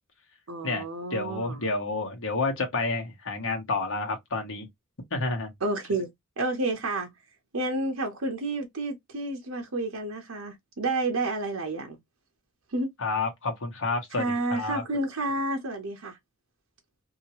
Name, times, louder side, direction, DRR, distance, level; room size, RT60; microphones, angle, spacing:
voice 1, 0.5-1.6 5.6-6.1 6.4-7.1 7.5-12.0 12.7-12.9 14.2-16.2, right 2 dB, 80° right, 0.9 m, -30 dB
voice 2, 1.1-4.7 5.1-5.5 13.0-14.8, left 3 dB, 65° left, 1.2 m, -29 dB
2.8 x 2.7 x 2.9 m
head